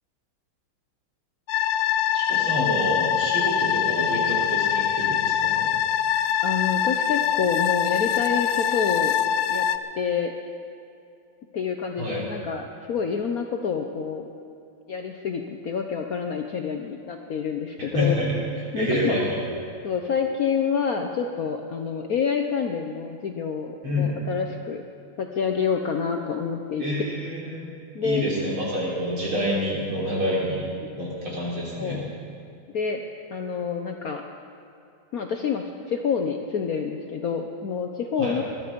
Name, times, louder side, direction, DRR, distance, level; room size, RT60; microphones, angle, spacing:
sound 1, 1.5-9.8, left 10 dB, 90° left, 1.5 m, -23 dB
voice 1, 2.1-5.7 12.0-12.3 17.8-18.4 18.7-19.4 23.8-24.1 26.8-27.7 28.0-30.6 31.0-32.0 38.2-38.3, equal, 70° right, -5 dB, 4.6 m, -27 dB
voice 2, 6.4-9.2 9.5-9.7 10.0-10.3 11.5-14.3 14.9-18.2 18.7-19.1 19.8-24.8 25.2-26.8 27.9-28.2 31.8-32.1 32.7-33.0 33.3-34.2 35.1-38.4, left 6 dB, 60° left, 4 dB, 1.0 m, -27 dB
20.0 x 12.5 x 5.2 m, 2.7 s
omnidirectional pair, 2.3 m